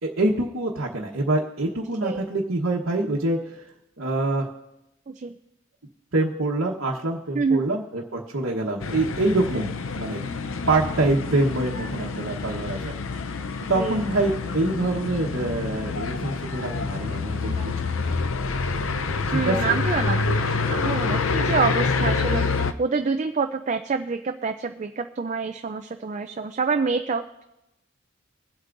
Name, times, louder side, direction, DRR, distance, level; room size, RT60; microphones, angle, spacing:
voice 1, 0.0-3.6 4.0-4.5 6.1-10.2 10.7-13.0 13.7-17.7 18.0-18.1 19.0-19.8 20.3-20.8, right 2 dB, 70° right, -3 dB, 1.2 m, -25 dB
sound 1, 8.8-22.7, left 4 dB, 70° left, 0.6 m, -27 dB
voice 2, 13.6-14.1 17.4-17.7 19.3-27.4, right 4 dB, 35° right, 6 dB, 0.4 m, -27 dB
23.0 x 8.1 x 2.6 m, 0.92 s
head